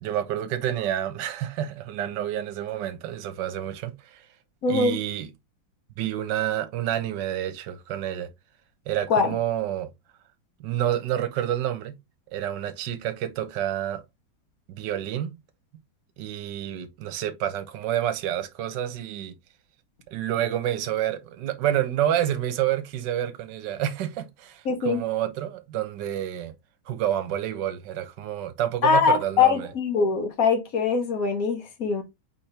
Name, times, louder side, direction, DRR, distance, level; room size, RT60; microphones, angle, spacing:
voice 1, 0.0-4.2 4.7-5.3 6.0-8.3 8.9-9.9 10.6-12.0 12.3-14.0 14.7-15.3 16.2-19.3 20.1-26.5 26.9-29.7, right 11 dB, 70° right, 1.4 m, -28 dB
voice 2, 4.6-5.0 9.1-9.4 24.6-25.0 28.8-32.0, left 5 dB, 50° left, 1.4 m, -22 dB
4.3 x 3.7 x 3.2 m
omnidirectional pair, 2.1 m